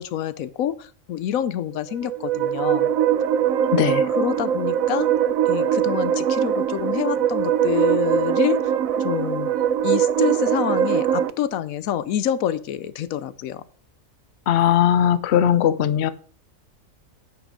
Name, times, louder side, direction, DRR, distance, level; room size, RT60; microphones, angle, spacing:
voice 1, 0.0-2.9 4.1-5.1 5.5-8.7 9.0-9.5 9.8-13.6, left 10 dB, 80° left, 16 dB, 1.1 m, -27 dB
sound 1, 1.9-11.3, right 9 dB, 85° right, 1.1 m, -21 dB
voice 2, 3.7-4.1 14.5-16.1, left 10 dB, 60° left, 15 dB, 0.9 m, -19 dB
9.7 x 5.8 x 6.3 m, 0.43 s
omnidirectional pair, 1.4 m